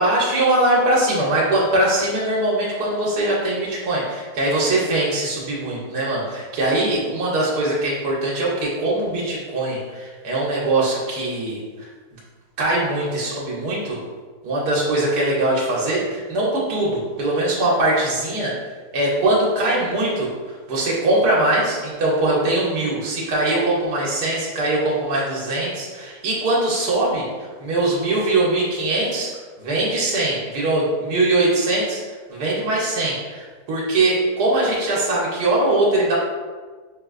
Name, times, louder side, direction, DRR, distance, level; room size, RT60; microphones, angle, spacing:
voice 1, 0.0-11.9 12.6-14.0 14.4-18.5 18.9-20.3 20.7-27.3 27.6-29.3 29.6-32.0 32.3-36.2, right 2 dB, 85° right, -5 dB, 1.3 m, -21 dB
5.3 x 2.7 x 2.4 m, 1.4 s
omnidirectional pair, 1.7 m